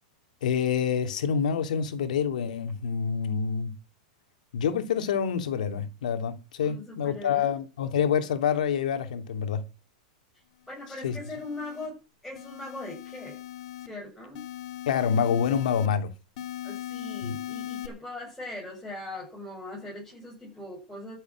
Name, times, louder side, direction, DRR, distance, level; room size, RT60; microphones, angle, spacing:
voice 1, 0.4-3.7 4.5-9.6 11.0-11.2 14.9-16.1 17.2-17.3, left 7 dB, 80° left, 2.8 m, -27 dB
voice 2, 6.6-7.5 10.7-12.0 12.2-13.4 13.8-14.4 16.6-21.2, left 2 dB, 5° left, 7.3 m, -40 dB
sound 1, 10.7-11.9 12.4-13.9 14.3-15.9 16.4-17.9, left 13 dB, 65° left, 2.9 m, -39 dB
13.0 x 7.9 x 7.6 m
supercardioid pair, 145°, 4 cm